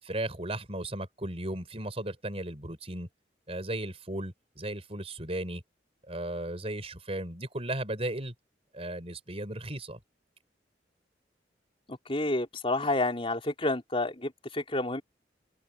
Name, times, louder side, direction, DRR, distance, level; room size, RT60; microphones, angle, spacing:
voice 1, 0.0-3.1 3.5-5.6 6.1-8.3 8.7-10.0, right 1 dB, 35° right, 4.9 m, -35 dB
voice 2, 11.9-15.0, left 2 dB, 30° left, 3.9 m, -30 dB
open air
head